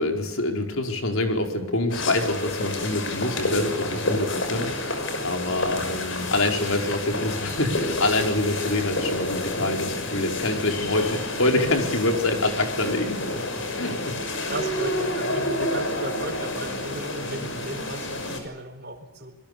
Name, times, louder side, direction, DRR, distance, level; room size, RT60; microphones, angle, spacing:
voice 1, 0.0-13.2 13.8-13.9, left 2 dB, 80° left, 3 dB, 4.8 m, -26 dB
sound 1, 1.9-18.4, left 1 dB, 65° left, 6.0 m, -29 dB
voice 2, 14.4-19.4, right 1 dB, 50° right, 6 dB, 4.5 m, -36 dB
26.5 x 22.0 x 6.9 m, 1.1 s
head